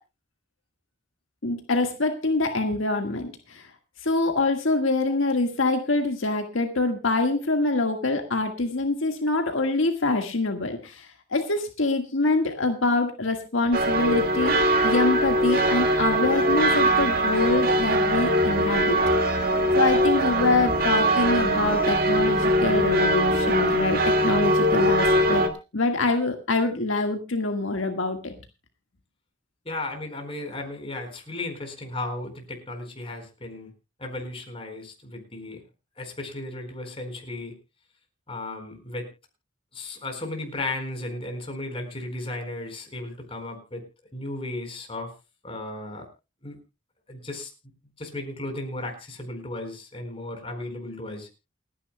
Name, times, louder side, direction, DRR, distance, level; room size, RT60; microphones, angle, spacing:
voice 1, 1.4-3.7 4.0-19.0 19.7-25.4 25.7-28.3, left 2 dB, 80° left, 5 dB, 1.6 m, -25 dB
sound 1, 13.7-25.5, right 1 dB, 50° right, 1.9 m, -22 dB
voice 2, 29.6-33.7 34.0-35.6 36.0-37.5 38.3-39.1 39.7-43.8 44.1-45.1 45.4-46.1 46.4-46.6 47.1-47.5 48.0-51.3, left 2 dB, 30° left, 4 dB, 4.4 m, -35 dB
29.0 x 10.0 x 2.2 m, 0.29 s
head